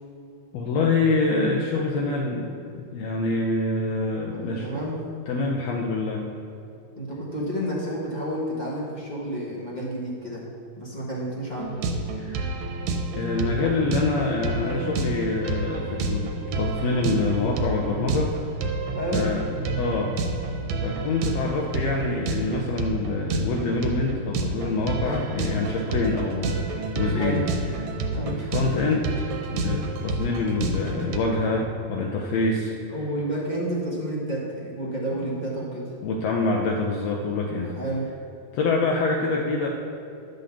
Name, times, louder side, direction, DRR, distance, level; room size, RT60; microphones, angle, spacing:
voice 1, 0.5-4.7 5.3-6.3 12.2-12.5 13.1-18.4 19.1-20.2 20.8-27.5 27.8-27.9 28.2-29.1 29.5-32.7 35.2-35.4 36.0-37.7 38.5-39.7, left 3 dB, 75° left, 0 dB, 1.6 m, -26 dB
voice 2, 4.3-5.0 7.0-10.5 10.8-11.8 18.9-19.3 25.0-25.2 27.1-27.4 28.1-28.4 29.6-29.8 32.9-35.9 37.7-38.1, right 1 dB, 30° left, -5 dB, 0.7 m, -30 dB
sound 1, 11.6-31.2, right 2 dB, 75° right, 1.9 m, -29 dB
11.0 x 3.9 x 7.0 m, 2.6 s
omnidirectional pair, 3.4 m